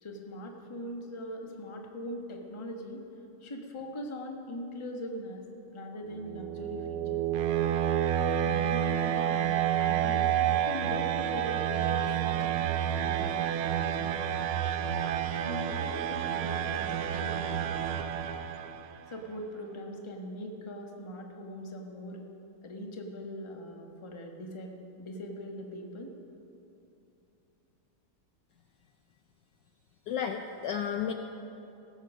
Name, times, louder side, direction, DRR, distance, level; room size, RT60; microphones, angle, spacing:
voice 1, 0.0-3.0 3.4-5.4 5.7-7.2 8.4-10.3 10.6-12.6 12.9-14.3 15.2-17.6 19.1-22.2 22.6-26.1, left 1 dB, 20° left, 2 dB, 0.8 m, -41 dB
sound 1, 6.1-19.0, right 10 dB, 85° right, 1.5 m, -29 dB
voice 2, 30.1-31.1, left 8 dB, 70° left, 5 dB, 1.1 m, -32 dB
17.5 x 8.1 x 6.3 m, 2.9 s
omnidirectional pair, 2.3 m